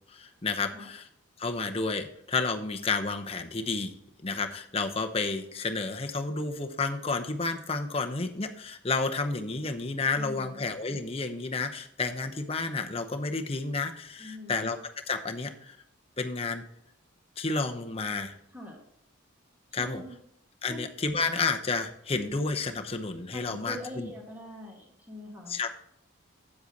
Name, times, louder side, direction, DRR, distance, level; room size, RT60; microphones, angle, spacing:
voice 1, 0.1-1.1 1.4-3.9 4.2-14.8 15.1-15.8 16.2-16.6 17.4-18.3 19.7-20.0 20.6-24.1 25.5-25.7, left 3 dB, 25° left, 5 dB, 0.7 m, -31 dB
voice 2, 10.2-10.6 14.2-14.7 18.5-18.8 19.8-20.2 20.7-20.9 23.3-25.6, left 1 dB, 10° right, -1 dB, 1.9 m, -43 dB
8.4 x 7.9 x 4.0 m, 0.73 s
head